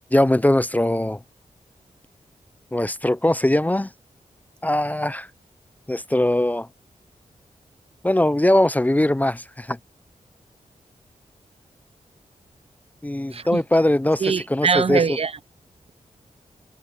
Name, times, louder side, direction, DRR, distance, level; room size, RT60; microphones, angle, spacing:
voice 1, 0.1-1.2 2.7-3.9 4.6-5.3 5.9-6.7 8.0-9.8 13.0-14.2 14.5-15.0, left 1 dB, 10° left, 0.5 m, -20 dB
voice 2, 13.3-13.6 14.2-15.4, right 5 dB, 45° right, 0.6 m, -23 dB
wide cardioid pair, 115°, 14 cm